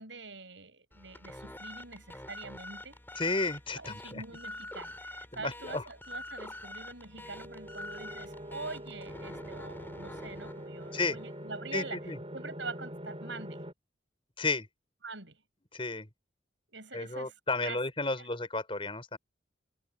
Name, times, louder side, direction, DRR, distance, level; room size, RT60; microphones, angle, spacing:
voice 1, 0.0-3.0 3.8-12.0 12.3-13.6 15.0-15.4 16.7-17.3 17.6-17.8 18.2-18.3, right 3 dB, 70° right, 7.1 m, -44 dB
sound 1, 0.9-11.5, left 1 dB, 10° left, 4.7 m, -46 dB
voice 2, 3.2-4.2 5.3-5.8 10.9-11.2 11.7-12.2 14.4-14.7 15.7-16.1 16.9-19.2, left 3 dB, 30° left, 5.5 m, -32 dB
sound 2, 7.1-13.7, equal, 30° right, 5.0 m, -44 dB
head